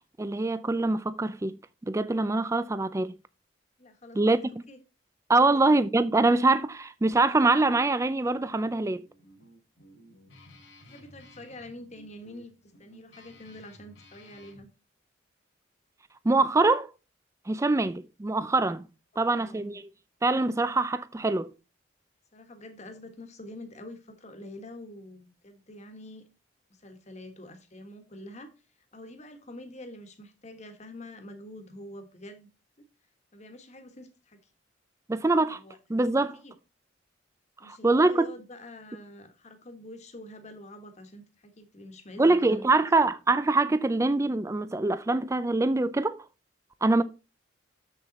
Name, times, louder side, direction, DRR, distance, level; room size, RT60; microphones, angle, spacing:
voice 1, 0.2-1.6 1.8-3.2 4.2-4.4 5.3-9.0 16.2-16.9 17.5-18.9 19.2-19.9 20.2-21.5 35.1-35.6 35.9-36.4 37.6-38.3 42.2-46.2 46.8-47.0, right 2 dB, 15° right, 0.4 m, -24 dB
voice 2, 3.8-4.8 5.5-5.7 10.9-12.5 12.8-14.7 17.7-17.9 19.1-19.8 22.3-26.2 26.7-28.5 28.9-32.5 32.8-32.9 33.3-34.4 35.5-35.8 36.4-36.5 37.6-43.1 46.9-47.0, left 1 dB, 35° left, 1.5 m, -46 dB
Guitar, 8.9-14.6, left 1 dB, 70° left, 2.4 m, -54 dB
7.3 x 6.7 x 4.1 m
head